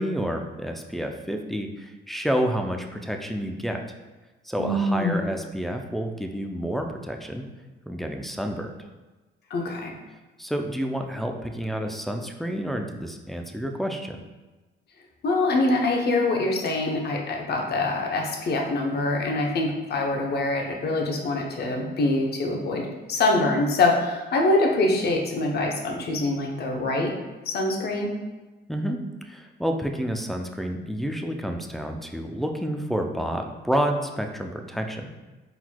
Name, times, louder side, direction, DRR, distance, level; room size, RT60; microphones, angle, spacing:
voice 1, 0.0-3.8 4.4-7.4 7.9-8.7 10.4-14.2 28.7-35.1, equal, ahead, 3 dB, 0.4 m, -29 dB
voice 2, 4.6-5.3 9.5-9.9 15.2-27.1 27.5-28.1, left 2 dB, 55° left, 1 dB, 0.8 m, -24 dB
4.5 x 3.9 x 2.2 m, 1.2 s
cardioid pair, 90°, 20 cm